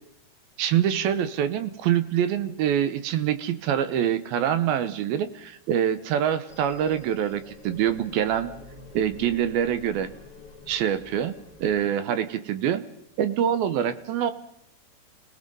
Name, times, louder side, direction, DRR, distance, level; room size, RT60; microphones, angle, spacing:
voice 1, 0.6-8.5 8.9-10.1 10.7-11.3 11.6-12.8 13.2-14.3, right 9 dB, 75° right, 12 dB, 2.7 m, -25 dB
sound 1, 6.5-11.8, left 3 dB, 65° left, 0.4 m, -47 dB
29.5 x 18.5 x 5.4 m, 0.74 s
omnidirectional pair, 4.5 m